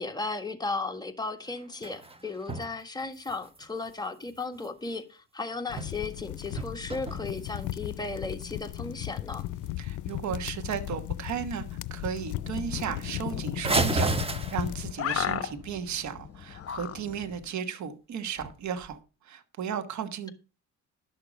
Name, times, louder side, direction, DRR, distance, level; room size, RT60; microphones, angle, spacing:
voice 1, 0.0-9.4, left 3 dB, 15° left, 1.5 m, -35 dB
sound 1, 1.4-2.7 3.0-5.0 5.5-6.2 6.5-7.9 8.4-8.5 9.0-9.1 9.6-9.7 10.0-10.5 10.9-11.3 11.7-11.8 12.1-12.2 12.5-12.6 13.6-15.0 18.3-18.9, right 2 dB, 20° right, 1.3 m, -33 dB
sound 2, 5.7-14.9, left 15 dB, 75° left, 0.5 m, -36 dB
voice 2, 9.8-11.6 11.9-19.0 19.2-20.3, right 7 dB, 70° right, 1.2 m, -35 dB
sound 3, 12.3-17.5, left 9 dB, 50° left, 1.0 m, -37 dB
11.5 x 6.5 x 5.1 m
cardioid pair, 90°, 30 cm